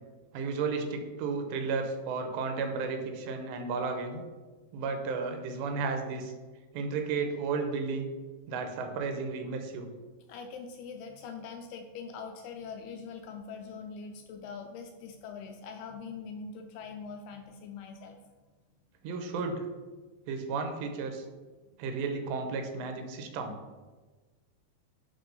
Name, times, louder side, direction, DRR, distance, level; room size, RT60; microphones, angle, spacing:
voice 1, 0.3-4.2 4.7-6.3 6.7-8.1 8.5-9.9 19.0-19.7 20.3-21.2 21.8-23.6, right 4 dB, 90° right, 5 dB, 3.1 m, -33 dB
voice 2, 10.3-18.2, left 5 dB, 80° left, 4 dB, 2.3 m, -43 dB
10.0 x 3.7 x 5.3 m, 1.3 s
omnidirectional pair, 5.0 m